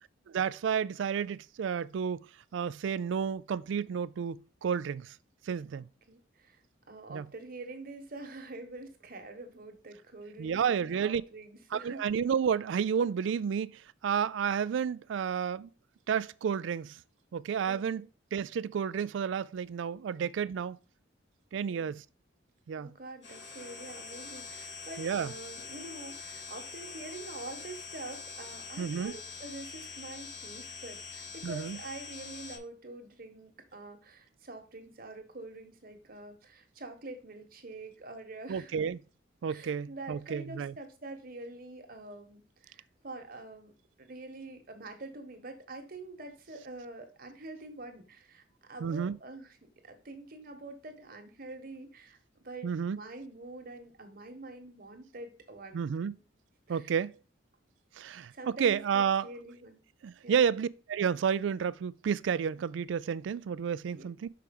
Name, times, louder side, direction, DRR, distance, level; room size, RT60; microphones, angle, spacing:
voice 1, 0.3-5.1 5.5-5.9 7.1-7.3 10.4-11.2 11.7-15.7 16.1-17.0 17.3-18.1 18.3-20.8 21.5-22.0 22.7-22.9 25.0-25.3 28.8-29.1 31.4-31.8 38.5-39.0 39.4-40.7 48.8-49.2 52.6-53.0 55.7-56.1 56.7-57.2 58.0-59.3 60.0-64.3, right 7 dB, 75° right, 0.3 m, -31 dB
voice 2, 5.7-6.6 6.9-12.0 17.7-18.1 21.5-22.0 22.8-38.8 39.5-43.7 44.0-56.2 56.7-56.9 58.3-59.8 60.2-60.5 63.9-64.1, right 2 dB, 50° right, 1.3 m, -46 dB
sound 1, 23.2-32.6, left 4 dB, 70° left, 2.8 m, -44 dB
5.8 x 4.8 x 5.3 m
head